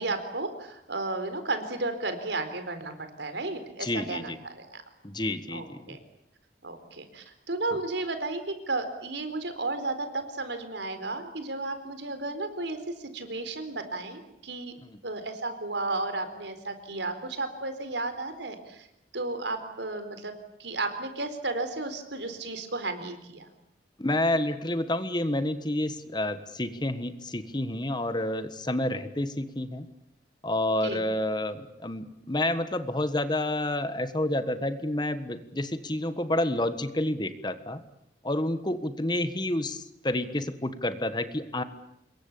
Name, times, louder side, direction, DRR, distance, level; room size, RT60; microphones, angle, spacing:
voice 1, 0.0-4.8 5.5-6.0 6.6-8.4 8.7-14.7 15.0-18.9 19.1-20.3 20.6-23.5 30.8-31.0, right 2 dB, 75° right, 9 dB, 4.2 m, -33 dB
voice 2, 3.8-4.4 5.0-6.0 14.8-14.9 24.0-29.9 30.4-37.8 38.2-41.6, left 1 dB, 25° left, 11 dB, 1.4 m, -29 dB
26.5 x 22.5 x 8.6 m, 0.80 s
head